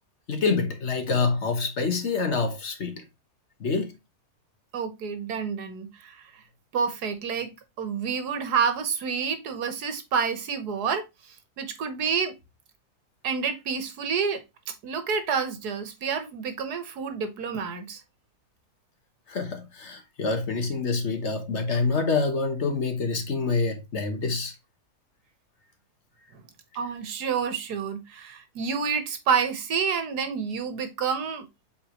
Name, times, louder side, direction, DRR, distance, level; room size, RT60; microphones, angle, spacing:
voice 1, 0.3-3.0 3.6-3.9 19.3-24.5, left 4 dB, 50° left, 1.2 m, -26 dB
voice 2, 4.7-6.2 6.7-7.5 7.8-11.1 11.6-12.3 13.2-14.4 14.8-18.0 26.8-31.5, right 6 dB, 80° right, 1.6 m, -28 dB
7.9 x 4.1 x 2.9 m
omnidirectional pair, 1.7 m